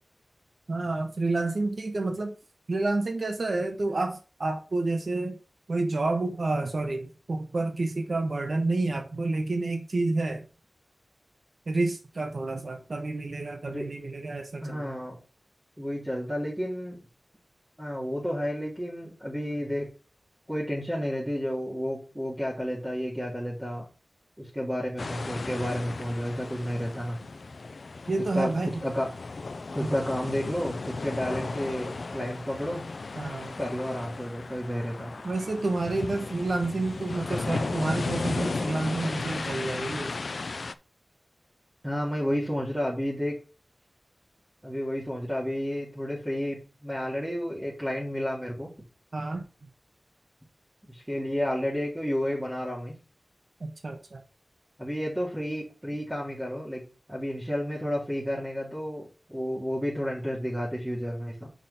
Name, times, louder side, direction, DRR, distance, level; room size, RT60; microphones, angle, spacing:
voice 1, 0.7-2.4 2.7-5.4 5.7-10.4 11.7-14.9 28.1-28.8 29.8-30.0 33.1-33.5 35.2-40.1 49.1-49.4 53.6-54.2, right 2 dB, 65° right, 4 dB, 1.1 m, -29 dB
voice 2, 14.6-15.2 15.8-17.0 17.8-19.9 20.5-23.9 24.4-27.2 28.3-28.5 28.8-29.1 29.7-32.8 33.6-35.2 41.8-43.3 44.6-48.7 50.9-53.0 54.8-56.8 57.1-61.5, equal, 10° right, -6 dB, 2.1 m, -31 dB
sound 1, 25.0-40.7, left 3 dB, 75° left, 0.4 m, -35 dB
5.9 x 4.3 x 5.5 m, 0.34 s
wide cardioid pair, 80°, 0 cm